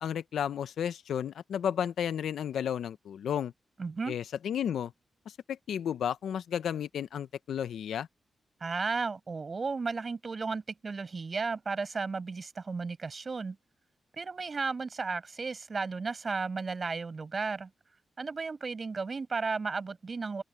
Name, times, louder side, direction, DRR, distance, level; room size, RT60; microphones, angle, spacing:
voice 1, 0.0-3.5 4.1-4.9 5.3-8.1, left 9 dB, 90° left, 0.7 m, -33 dB
voice 2, 3.8-4.2 8.6-13.6 14.2-17.7 18.2-20.4, right 4 dB, 50° right, 5.3 m, -34 dB
open air
cardioid pair, 60°, 0 cm